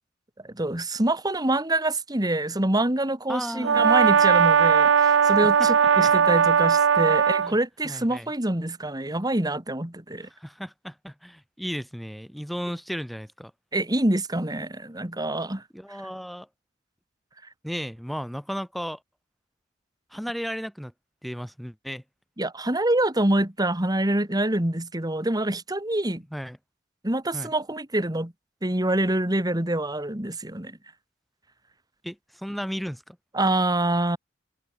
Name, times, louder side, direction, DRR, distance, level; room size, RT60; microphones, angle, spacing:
voice 1, 0.4-10.3 13.7-15.6 22.4-26.2 27.0-28.3 28.6-30.8 33.3-34.2, right 1 dB, 20° right, 2.1 m, -26 dB
voice 2, 3.3-3.8 5.6-5.7 7.0-7.6 7.8-8.3 10.3-13.5 15.7-16.5 17.6-19.0 20.1-20.9 21.2-22.0 26.3-26.6 27.3-27.5 32.0-33.2, equal, ahead, 7.7 m, -34 dB
Brass instrument, 3.6-7.5, right 7 dB, 85° right, 0.5 m, -19 dB
head